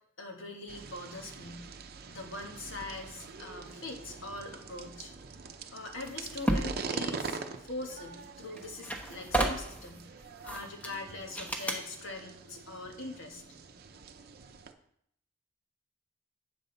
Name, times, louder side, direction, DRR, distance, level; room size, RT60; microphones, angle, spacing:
voice 1, 0.2-1.7 2.1-5.1 5.7-10.2 10.4-13.4, left 2 dB, 75° left, 2 dB, 1.5 m, -42 dB
sound 1, 0.7-14.7, right 4 dB, 55° right, 0.6 m, -44 dB
sound 2, 6.1-6.8 8.2-8.3 8.6-9.9 10.5-11.0 11.4-11.8, right 1 dB, 10° left, 1.0 m, -32 dB
8.6 x 7.2 x 3.9 m, 0.72 s
head